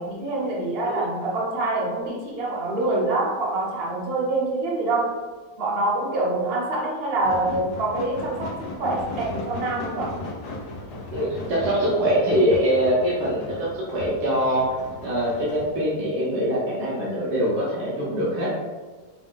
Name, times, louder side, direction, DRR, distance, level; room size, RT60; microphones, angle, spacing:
voice 1, 0.0-5.1 5.6-10.2, right 2 dB, 45° right, -4 dB, 0.9 m, -25 dB
sound 1, 7.2-15.7, left 2 dB, 75° left, 1.3 m, -36 dB
voice 2, 11.1-18.6, equal, 75° right, -7 dB, 1.5 m, -23 dB
5.0 x 2.1 x 3.7 m, 1.3 s
omnidirectional pair, 1.8 m